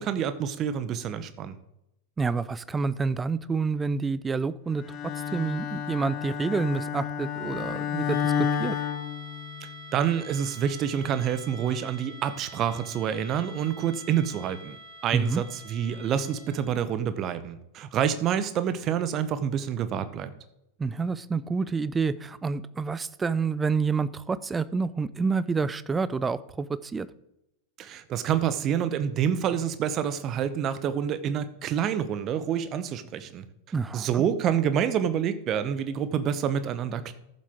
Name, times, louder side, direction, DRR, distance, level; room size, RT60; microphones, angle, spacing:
voice 1, 0.0-1.6 9.9-14.8 15.0-20.3 27.8-33.5 33.9-37.1, right 9 dB, 35° right, 13 dB, 0.8 m, -27 dB
voice 2, 2.2-4.8 5.3-8.8 15.1-15.4 20.8-27.1 33.7-34.2, right 4 dB, 15° right, 17 dB, 0.5 m, -28 dB
Bowed string instrument, 4.8-9.8, left 8 dB, 35° left, 1.0 m, -30 dB
sound 1, 8.1-16.8, right 1 dB, 60° right, 4.6 m, -46 dB
14.0 x 7.4 x 3.6 m, 0.85 s
figure-of-eight pair, 90°, 0 cm